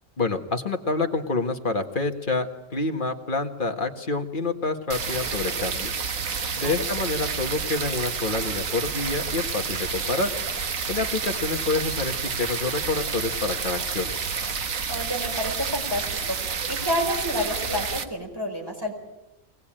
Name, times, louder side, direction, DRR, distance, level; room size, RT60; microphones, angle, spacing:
voice 1, 0.2-6.0 6.6-10.3 10.9-14.1, left 3 dB, 40° left, 5 dB, 1.8 m, -27 dB
sound 1, 4.9-18.0, right 5 dB, 80° right, 1.8 m, -29 dB
voice 2, 14.9-16.3 16.7-18.9, equal, 15° right, 1 dB, 5.0 m, -29 dB
23.0 x 19.5 x 8.9 m, 0.95 s
omnidirectional pair, 1.4 m